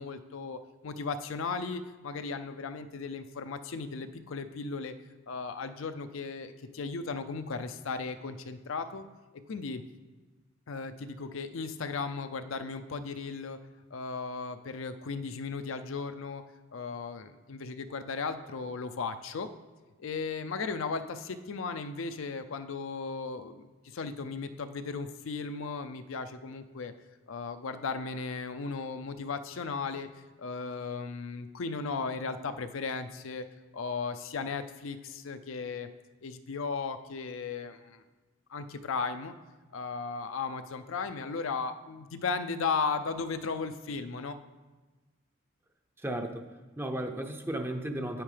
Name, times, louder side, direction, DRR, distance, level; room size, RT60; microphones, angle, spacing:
voice 1, 0.0-4.9 5.3-9.0 9.5-9.8 10.7-13.6 13.9-16.4 16.7-19.5 20.0-26.9 27.3-30.1 30.4-33.5 33.7-35.9 36.2-38.0 38.5-39.3 39.7-44.4, left 4 dB, 70° left, 9 dB, 0.5 m, -36 dB
voice 2, 46.0-46.4 46.8-48.2, right 1 dB, 10° right, 4 dB, 0.6 m, -34 dB
9.0 x 8.9 x 3.3 m, 1.3 s
head